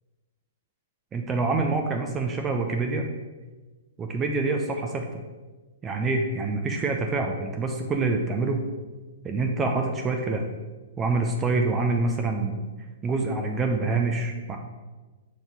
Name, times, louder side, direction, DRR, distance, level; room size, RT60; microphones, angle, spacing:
voice 1, 1.1-3.1 4.0-5.2 5.8-8.6 9.2-10.5 11.0-12.6 13.0-14.6, right 3 dB, 20° right, 3 dB, 0.6 m, -26 dB
5.3 x 4.2 x 4.6 m, 1.3 s
hypercardioid pair, 130°, 0 cm